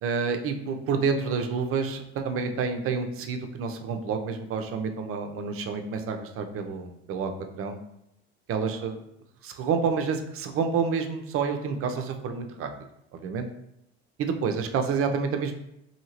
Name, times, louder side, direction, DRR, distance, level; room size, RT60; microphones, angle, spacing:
voice 1, 0.0-7.3 7.6-7.8 8.5-9.0 9.4-12.7 13.1-13.5 14.2-15.5, right 5 dB, 45° right, 6 dB, 0.6 m, -28 dB
2.8 x 2.7 x 2.8 m, 0.81 s
hypercardioid pair, 80°, 32 cm